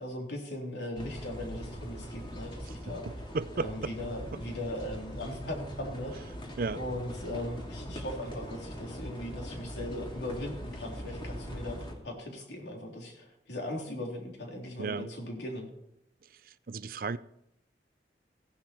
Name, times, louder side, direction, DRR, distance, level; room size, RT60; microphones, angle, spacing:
voice 1, 0.0-3.1 3.6-6.1 6.7-15.7, left 1 dB, 75° left, 3.5 m, -39 dB
sound 1, 0.9-11.9, equal, 30° left, 2.6 m, -41 dB
voice 2, 3.3-3.9 6.6-6.8 14.8-15.1 16.7-17.2, right 4 dB, 50° right, 0.5 m, -33 dB
16.0 x 11.5 x 4.5 m
head